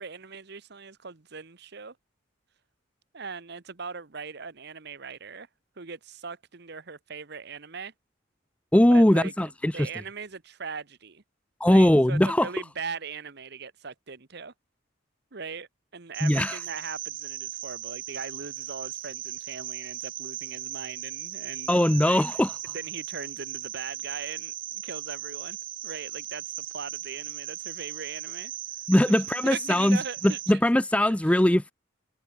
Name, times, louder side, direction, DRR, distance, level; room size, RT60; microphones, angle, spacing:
voice 1, 0.0-2.0 3.1-5.5 5.8-7.9 8.9-11.2 11.6-14.5 15.3-21.7 22.0-22.2 22.7-25.6 25.8-28.5 29.1-29.2 29.4-30.6 31.2-31.4, right 5 dB, 55° right, 1.1 m, -40 dB
voice 2, 8.7-9.9 11.6-12.5 16.2-16.6 21.7-22.5 28.9-30.0 30.2-31.7, left 1 dB, 5° left, 0.4 m, -20 dB
Cricket, 16.1-30.5, right 12 dB, 70° right, 3.0 m, -38 dB
head